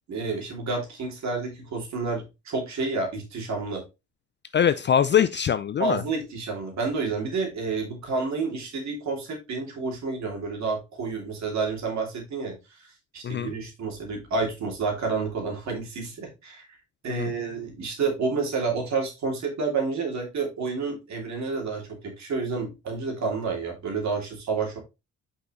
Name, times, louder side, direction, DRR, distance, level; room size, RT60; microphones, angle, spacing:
voice 1, 0.1-3.8 5.8-12.9 13.1-16.7 17.0-24.8, right 4 dB, 65° right, 2.9 m, -29 dB
voice 2, 4.5-6.0 13.2-13.5 17.1-17.3, left 9 dB, 40° left, 0.4 m, -23 dB
6.1 x 5.7 x 3.1 m
cardioid pair, 90°, 30 cm